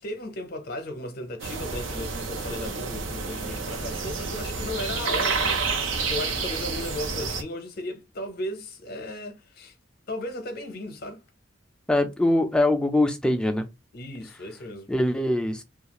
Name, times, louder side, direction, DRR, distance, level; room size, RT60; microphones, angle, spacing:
voice 1, 0.0-9.7 10.1-11.2 13.9-14.9, left 1 dB, 55° left, 0.7 m, -36 dB
sound 1, 1.4-7.4, right 4 dB, 90° right, 0.7 m, -29 dB
voice 2, 11.9-13.7 14.9-15.6, left 1 dB, 5° left, 0.4 m, -23 dB
2.4 x 2.3 x 2.9 m
head